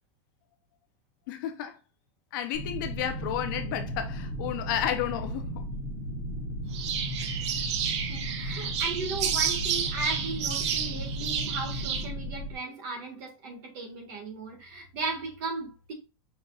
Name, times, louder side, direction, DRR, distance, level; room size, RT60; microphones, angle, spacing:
voice 1, 1.3-1.8 2.3-5.7, left 10 dB, 40° left, 0.5 m, -32 dB
sound 1, 2.5-12.5, equal, 15° right, 1.6 m, -35 dB
sound 2, 6.7-12.1, right 8 dB, 65° right, 0.7 m, -31 dB
voice 2, 8.1-15.9, right 3 dB, 40° right, 1.5 m, -36 dB
5.4 x 3.8 x 2.2 m
supercardioid pair, 175°, 16 cm